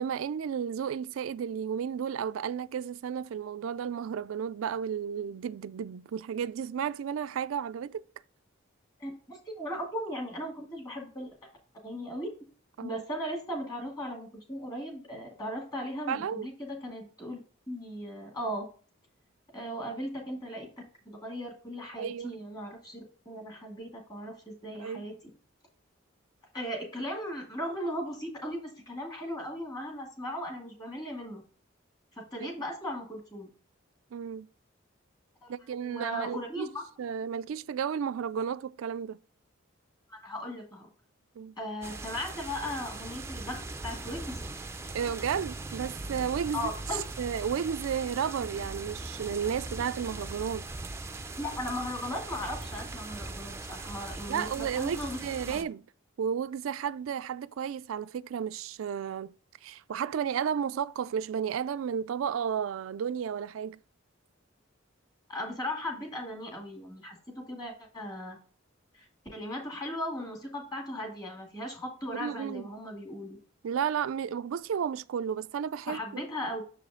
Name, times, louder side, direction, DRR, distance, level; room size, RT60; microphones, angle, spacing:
voice 1, 0.0-8.0 12.8-13.0 16.1-16.5 22.0-22.4 24.7-25.0 32.4-32.5 34.1-34.5 35.5-36.7 37.0-39.2 41.4-41.5 44.9-46.7 47.2-50.6 54.3-55.8 56.2-59.3 59.6-63.8 72.2-72.7 73.6-76.2, right 7 dB, 85° right, 0.3 m, -33 dB
voice 2, 9.0-11.4 11.8-12.3 12.8-17.4 17.7-18.7 19.5-20.7 21.0-25.1 26.5-31.4 32.2-33.5 35.4-35.5 35.8-36.8 40.1-40.9 41.6-44.4 46.5-47.0 51.4-55.2 55.5-55.6 65.3-68.4 68.9-69.0 69.3-73.4 75.8-76.6, equal, 20° left, 2.4 m, -37 dB
sound 1, 41.8-55.6, right 2 dB, 15° right, 0.4 m, -40 dB
7.0 x 4.9 x 3.7 m
head